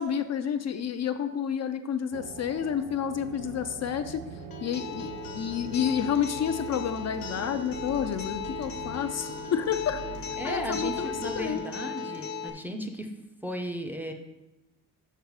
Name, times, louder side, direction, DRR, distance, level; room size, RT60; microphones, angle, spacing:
voice 1, 0.0-4.2 4.6-10.0 10.4-11.6, left 8 dB, 50° left, 9 dB, 0.4 m, -30 dB
sound 1, 2.1-11.6, right 5 dB, 65° right, 0.7 m, -43 dB
Musical instrument, 3.2-11.8, equal, 85° right, 3.0 m, -53 dB
Acoustic guitar, 4.5-12.5, left 5 dB, 75° left, 1.0 m, -37 dB
voice 2, 10.4-13.1 13.4-14.1, equal, 5° right, 3 dB, 0.5 m, -35 dB
6.7 x 5.7 x 4.8 m, 0.97 s
wide cardioid pair, 155°, 35 cm